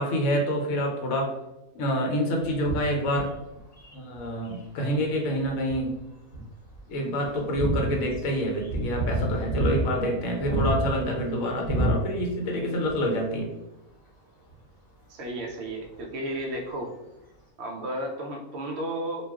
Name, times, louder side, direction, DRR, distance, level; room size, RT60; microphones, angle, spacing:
voice 1, 0.0-1.3 1.7-3.3 3.9-6.0 6.9-13.5, equal, 75° left, 1 dB, 1.1 m, -27 dB
sound 1, 2.4-4.6 5.2-6.0 6.3-6.4 6.7-6.8 7.2-12.5 12.8-13.0 14.5-14.6, right 1 dB, 35° left, 1.0 m, -29 dB
voice 2, 15.1-16.9 17.6-19.3, right 1 dB, 65° right, 2 dB, 0.6 m, -33 dB
2.3 x 2.2 x 3.4 m, 0.95 s
omnidirectional pair, 1.5 m